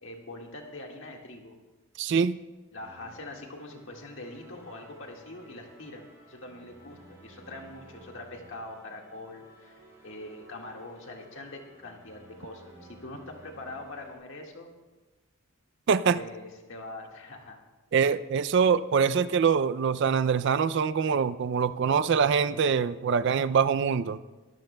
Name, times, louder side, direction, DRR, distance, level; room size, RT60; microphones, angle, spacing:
voice 1, 0.0-1.5 2.7-14.7 16.0-17.6 18.6-18.8, left 2 dB, 60° left, 1 dB, 1.8 m, -43 dB
voice 2, 2.0-2.4 15.9-16.2 17.9-24.2, right 6 dB, 55° right, 14 dB, 0.3 m, -24 dB
sound 1, 2.8-14.2, right 1 dB, 15° right, 4.1 m, -54 dB
22.0 x 13.5 x 2.2 m, 1.2 s
head